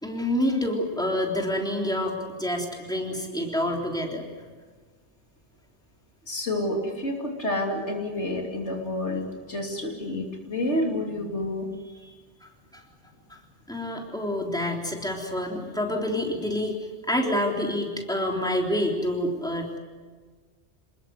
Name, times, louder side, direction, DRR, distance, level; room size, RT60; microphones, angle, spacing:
voice 1, 0.0-4.3 12.4-12.8 13.7-16.8 17.1-19.8, left 1 dB, 5° left, 0 dB, 3.6 m, -27 dB
voice 2, 6.3-11.8, left 1 dB, 80° left, 1 dB, 3.3 m, -29 dB
27.5 x 20.5 x 8.1 m, 1.4 s
omnidirectional pair, 1.2 m